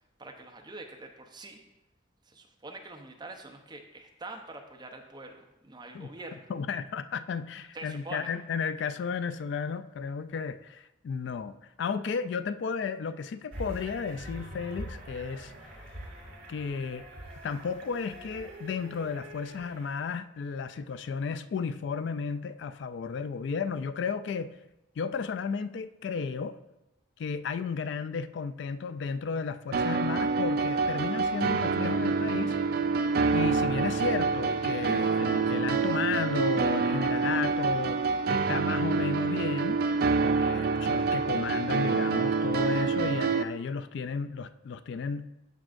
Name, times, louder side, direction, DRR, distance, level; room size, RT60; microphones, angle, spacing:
voice 1, 0.2-1.6 2.3-6.5 7.7-8.3, right 2 dB, 20° right, 2 dB, 0.7 m, -44 dB
voice 2, 6.5-15.7 16.5-17.1 17.4-24.5 25.0-26.6 27.2-32.6 33.3-38.0 38.3-39.8 40.2-45.3, left 5 dB, 60° left, 12 dB, 0.3 m, -33 dB
sound 1, 13.5-20.1, right 1 dB, 70° right, 2.6 m, -44 dB
sound 2, 29.7-43.4, right 4 dB, 50° right, 0.3 m, -27 dB
13.5 x 5.3 x 2.5 m, 0.94 s
head